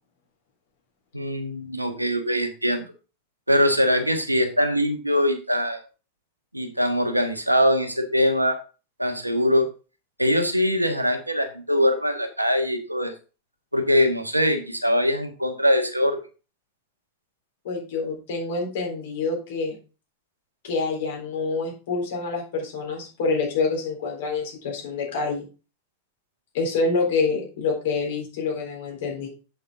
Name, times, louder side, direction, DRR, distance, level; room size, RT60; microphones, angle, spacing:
voice 1, 1.1-2.8 3.5-5.8 6.5-8.6 9.0-9.7 10.2-13.1 13.7-16.2, equal, 85° right, 5 dB, 1.3 m, -22 dB
voice 2, 17.6-19.8 20.6-25.5 26.5-29.3, left 4 dB, 55° left, 0 dB, 3.9 m, -27 dB
7.9 x 7.4 x 3.9 m, 0.33 s
figure-of-eight pair, 90°, 0 cm